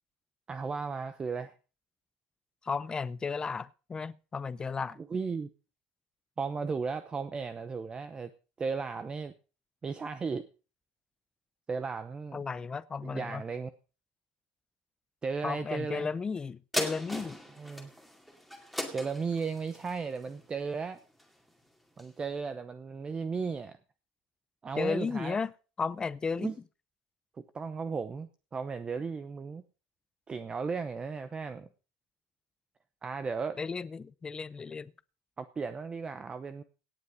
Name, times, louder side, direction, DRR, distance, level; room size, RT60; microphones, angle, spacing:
voice 1, 0.5-1.5 5.1-5.5 6.4-8.3 8.6-9.3 9.8-10.5 11.7-12.4 13.0-13.7 15.2-16.1 17.6-17.9 18.9-21.0 22.0-23.8 24.6-25.4 26.4-26.5 27.5-29.6 30.3-31.7 33.0-33.6 35.4-36.6, right 5 dB, 20° right, 0.8 m, -35 dB
voice 2, 2.6-5.0 12.3-13.4 15.4-17.4 24.8-25.5 25.8-26.5 33.6-34.9, left 5 dB, 15° left, 0.5 m, -34 dB
sound 1, 16.7-21.5 22.0-22.1, equal, ahead, 2.2 m, -38 dB
17.5 x 8.4 x 5.0 m
supercardioid pair, 135°, 5 cm